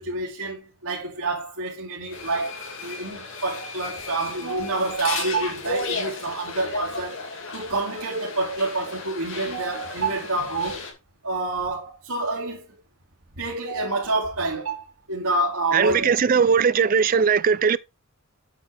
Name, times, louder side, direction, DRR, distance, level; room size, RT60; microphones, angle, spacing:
voice 1, 0.0-7.1 7.5-10.9 11.2-12.6 13.4-16.1, right 2 dB, 85° right, 2.4 m, -28 dB
sound 1, 2.1-10.9, left 3 dB, 55° left, 2.3 m, -35 dB
voice 2, 15.7-17.8, right 6 dB, 40° right, 0.3 m, -19 dB
8.2 x 6.8 x 3.3 m
head